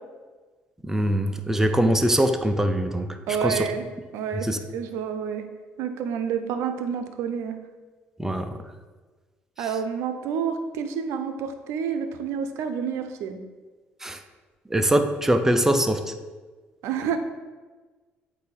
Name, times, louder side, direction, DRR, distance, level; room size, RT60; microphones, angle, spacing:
voice 1, 0.8-3.7 4.4-4.6 8.2-8.5 14.0-14.2 14.7-16.1, right 1 dB, 10° right, 7 dB, 0.6 m, -23 dB
voice 2, 3.3-3.8 4.1-5.4 5.8-7.6 9.6-13.4 16.8-17.2, right 7 dB, 70° right, 8 dB, 0.6 m, -29 dB
8.1 x 2.7 x 4.8 m, 1.3 s
hypercardioid pair, 55°, 5 cm